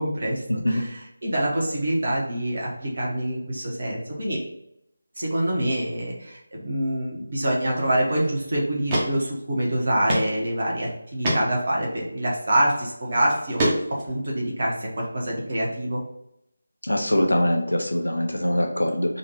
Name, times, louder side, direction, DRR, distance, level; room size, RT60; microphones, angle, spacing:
voice 1, 0.0-4.4 5.2-13.6 14.1-16.0, right 1 dB, 50° right, -3 dB, 1.3 m, -26 dB
sound 1, 8.2-8.3 8.9-9.1 9.4-9.5 10.1-10.3 10.7-10.8 11.2-11.4 12.6-12.7 13.3-14.1, right 1 dB, 20° right, 0.9 m, -24 dB
voice 2, 16.9-19.2, left 1 dB, 75° left, 3 dB, 0.9 m, -23 dB
4.0 x 2.5 x 4.2 m, 0.80 s
figure-of-eight pair, 160°, 0 cm